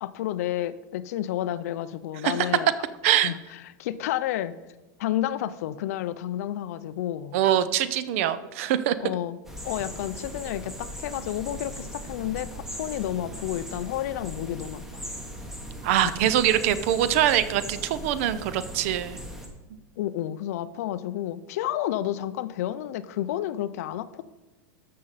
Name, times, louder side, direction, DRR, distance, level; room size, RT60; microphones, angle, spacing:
voice 1, 0.0-2.7 3.2-4.5 5.0-7.4 9.0-9.4 9.6-15.0 16.0-16.1 20.0-24.3, left 12 dB, 50° left, 15 dB, 0.5 m, -31 dB
voice 2, 3.0-3.3 7.3-8.9 15.8-19.2, right 11 dB, 40° right, 14 dB, 0.5 m, -23 dB
sound 1, 9.4-19.5, equal, 5° right, 0.9 m, -39 dB
13.0 x 6.5 x 4.1 m, 1.1 s
supercardioid pair, 175°, 11 cm